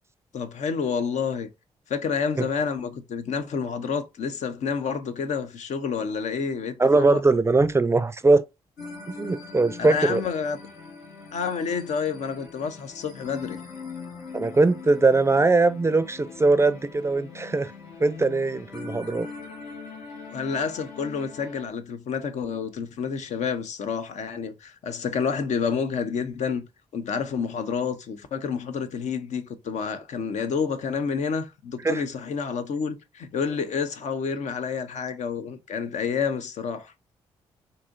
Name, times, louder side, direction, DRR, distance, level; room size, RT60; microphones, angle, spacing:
voice 1, 0.3-1.5 1.9-7.2 9.8-10.6 11.3-13.6 20.3-26.6 26.9-36.9, left 6 dB, 65° left, 0.6 m, -29 dB
voice 2, 6.8-8.4 9.1-10.2 14.3-17.7 18.0-19.3 31.8-32.0, right 3 dB, 20° right, 0.4 m, -21 dB
sound 1, 8.8-21.7, left 4 dB, 80° left, 1.9 m, -41 dB
4.1 x 2.7 x 2.5 m
hypercardioid pair, 45°, 13 cm